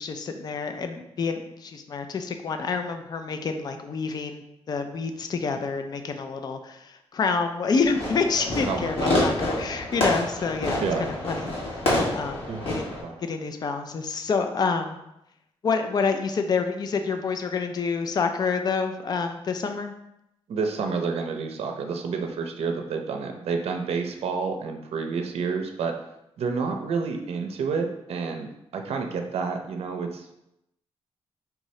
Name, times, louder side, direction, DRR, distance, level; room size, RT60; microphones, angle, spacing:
voice 1, 0.0-11.5 12.1-12.9 13.2-15.0 15.6-19.9, left 5 dB, 40° left, 7 dB, 0.4 m, -28 dB
Fireworks, 7.8-13.0, left 1 dB, 60° left, 1.3 m, -27 dB
voice 2, 8.7-9.2 10.8-11.1 12.5-12.7 13.0-13.2 20.5-25.9 26.4-30.3, right 5 dB, 70° right, 4 dB, 0.5 m, -29 dB
4.6 x 2.7 x 3.1 m, 0.85 s
cardioid pair, 115°, 11 cm